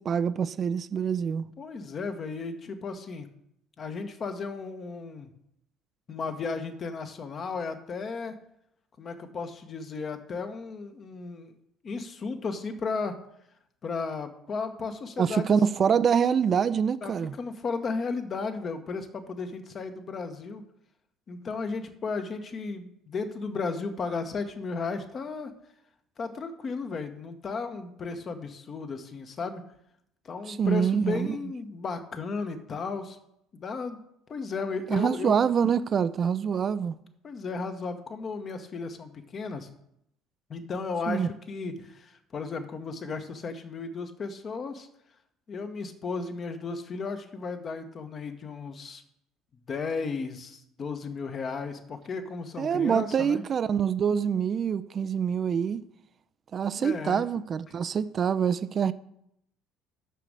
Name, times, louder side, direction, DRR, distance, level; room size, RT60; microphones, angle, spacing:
voice 1, 0.0-1.5 15.2-17.4 30.5-31.3 34.9-37.0 41.1-41.3 52.6-55.8 56.5-58.9, right 7 dB, 40° right, 0.4 m, -25 dB
voice 2, 1.6-3.3 3.8-5.3 6.1-8.4 9.0-11.5 11.8-13.2 13.8-15.6 17.0-20.6 21.3-25.5 26.2-29.6 30.2-33.2 33.5-34.0 34.3-35.4 37.2-39.7 40.5-44.9 45.5-49.0 49.7-53.4 56.8-57.2, left 4 dB, 40° left, 1.0 m, -34 dB
6.7 x 6.0 x 6.6 m
hypercardioid pair, 60°, 0 cm